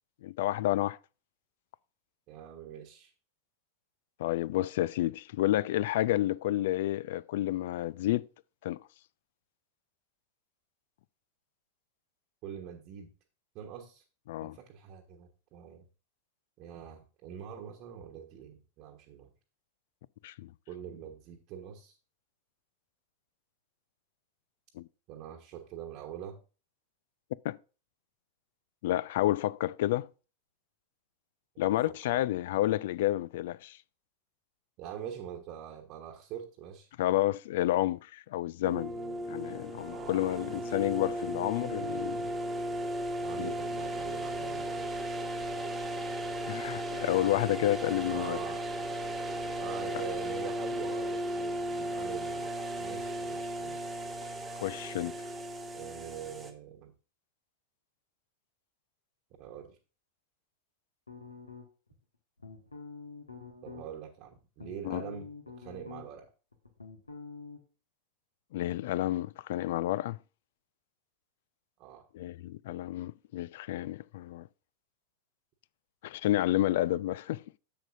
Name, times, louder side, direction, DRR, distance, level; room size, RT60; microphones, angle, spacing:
voice 1, 0.2-1.0 4.2-8.3 8.6-8.8 14.3-14.6 20.2-20.5 24.8-24.9 27.4-27.6 28.8-30.1 31.6-33.8 37.0-38.9 39.3-42.3 43.4-43.5 46.5-48.4 54.6-55.1 64.8-65.0 68.5-70.2 72.1-74.5 76.0-77.6, left 15 dB, 55° left, 0.3 m, -30 dB
voice 2, 2.3-3.1 12.4-13.1 13.5-14.0 14.4-15.8 16.6-19.3 20.7-22.0 25.1-26.4 31.6-31.8 32.1-32.3 34.8-36.9 38.9-39.2 39.9-40.8 41.0-41.3 43.2-45.1 48.1-48.6 49.6-54.0 55.7-56.9 59.4-59.8 63.6-65.3 65.6-66.3 71.8-72.1, right 9 dB, 40° right, 1.2 m, -44 dB
sound 1, 38.6-56.5, right 1 dB, 15° right, 1.2 m, -36 dB
sound 2, 61.1-61.9 62.4-63.9 64.3-66.3 66.5-67.6, left 4 dB, 80° left, 1.4 m, -46 dB
10.5 x 7.6 x 2.6 m
figure-of-eight pair, 90°, 0 cm